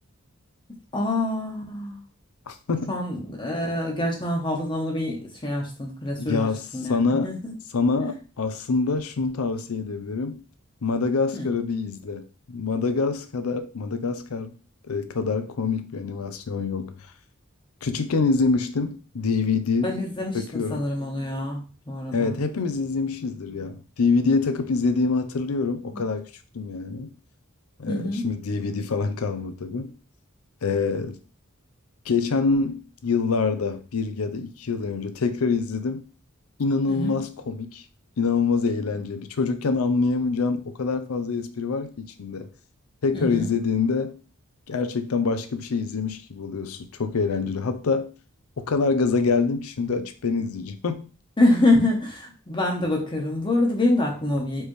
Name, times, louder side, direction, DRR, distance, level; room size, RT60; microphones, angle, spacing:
voice 1, 0.9-2.0 2.9-7.5 8.0-8.1 11.3-11.5 19.8-21.6 21.9-22.4 25.9-26.0 27.9-28.2 36.9-37.2 43.1-43.5 51.4-54.6, left 1 dB, 25° left, 1.0 m, -25 dB
voice 2, 2.5-2.9 6.2-6.6 6.9-7.3 7.7-10.4 10.8-14.5 14.9-16.9 17.8-20.0 20.3-20.9 22.1-26.3 26.5-27.1 27.8-29.9 30.6-31.2 32.1-36.0 36.6-37.8 38.2-42.5 43.0-44.2 44.7-48.1 48.6-51.0, left 4 dB, 85° left, 0.6 m, -25 dB
4.4 x 3.4 x 3.1 m
head